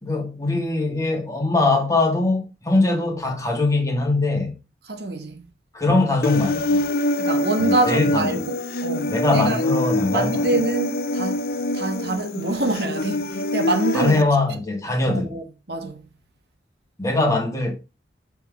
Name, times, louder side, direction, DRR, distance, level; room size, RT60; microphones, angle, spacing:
voice 1, 0.0-4.6 5.7-6.8 7.6-8.4 9.1-10.5 13.9-15.3 17.0-17.7, left 2 dB, 20° left, 1.6 m, -22 dB
voice 2, 4.9-5.4 7.2-9.6 10.1-11.4 11.7-14.3 15.1-16.0, right 2 dB, 65° right, 1.2 m, -26 dB
Human voice, 6.2-14.2, left 1 dB, 55° left, 0.6 m, -25 dB
7.0 x 3.6 x 6.1 m
head